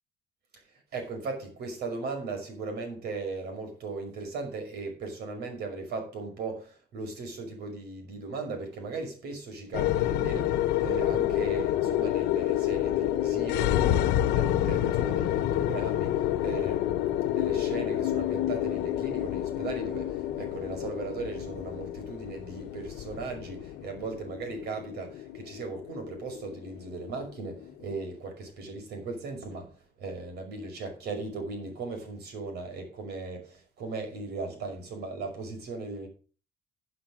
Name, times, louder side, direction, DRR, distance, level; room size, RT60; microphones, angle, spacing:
voice 1, 0.5-36.1, right 3 dB, 75° right, 5.6 m, -38 dB
sound 1, 9.7-28.1, left 12 dB, 90° left, 1.1 m, -28 dB
12.5 x 7.0 x 6.5 m
cardioid pair, 110°, 17 cm